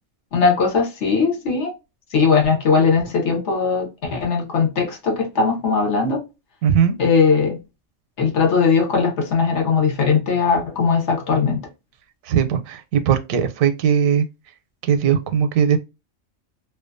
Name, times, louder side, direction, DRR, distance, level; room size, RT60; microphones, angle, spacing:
voice 1, 0.3-1.7 2.1-6.2 7.0-7.6 8.2-11.6, left 5 dB, 60° left, 1.1 m, -19 dB
voice 2, 6.6-7.0 12.3-14.3 14.8-15.8, right 8 dB, 85° right, 1.0 m, -19 dB
2.6 x 2.3 x 2.4 m
omnidirectional pair, 1.4 m